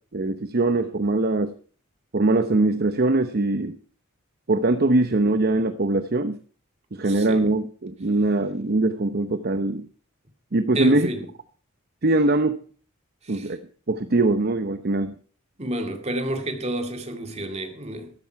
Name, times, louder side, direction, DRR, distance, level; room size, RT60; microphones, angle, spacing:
voice 1, 0.1-1.5 2.1-3.8 4.5-6.4 6.9-9.9 10.5-11.1 12.0-12.6 13.3-13.6 13.9-15.1, right 2 dB, 45° right, 0.8 m, -22 dB
voice 2, 7.0-7.5 10.7-11.3 13.2-13.5 15.6-18.1, right 1 dB, 30° right, 2.3 m, -30 dB
14.0 x 13.5 x 4.6 m
head